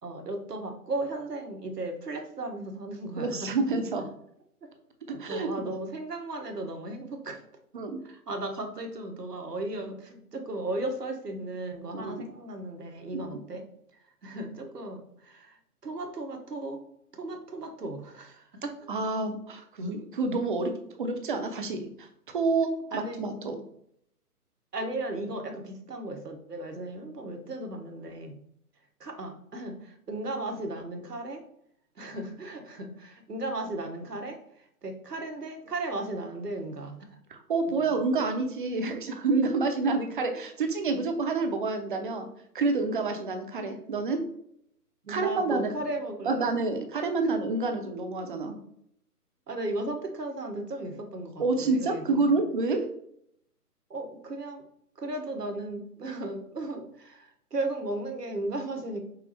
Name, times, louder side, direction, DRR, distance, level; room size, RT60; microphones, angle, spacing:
voice 1, 0.0-3.5 5.1-7.4 8.0-13.6 14.2-15.5 15.8-16.8 17.1-18.7 22.9-23.2 24.7-28.4 29.0-31.4 32.0-34.4 34.8-37.0 37.7-37.8 45.0-46.5 49.5-52.3 53.9-54.6 55.0-59.0, right 2 dB, 85° right, 4 dB, 1.2 m, -35 dB
voice 2, 3.2-4.1 5.1-5.7 7.7-8.0 11.9-12.3 13.1-13.3 18.9-20.7 21.0-22.1 22.3-23.6 37.3-42.3 42.5-44.2 45.1-45.9 46.3-48.6 51.4-52.9, right 3 dB, 35° right, 5 dB, 0.7 m, -28 dB
5.6 x 2.1 x 4.1 m, 0.70 s
figure-of-eight pair, 135°, 46 cm